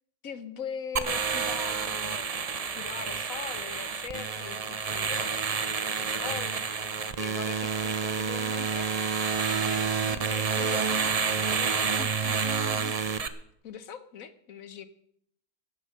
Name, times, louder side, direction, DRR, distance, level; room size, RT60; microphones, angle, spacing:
voice 1, 0.2-9.2 9.4-12.9 13.6-14.9, left 7 dB, 65° left, 13 dB, 1.3 m, -42 dB
sound 1, 1.0-13.3, right 5 dB, 40° right, 0.5 m, -29 dB
15.0 x 10.0 x 6.4 m, 0.69 s
omnidirectional pair, 1.6 m